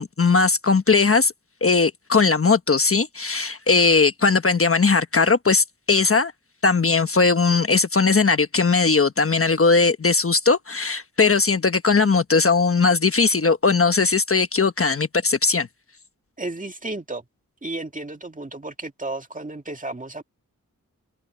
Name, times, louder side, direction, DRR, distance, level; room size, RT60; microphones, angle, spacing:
voice 1, 0.0-1.3 1.6-6.3 6.6-15.7, left 4 dB, 40° left, 1.2 m, -19 dB
voice 2, 16.4-17.2 17.6-20.2, right 2 dB, 25° right, 2.1 m, -33 dB
open air
wide cardioid pair, 85°, 33 cm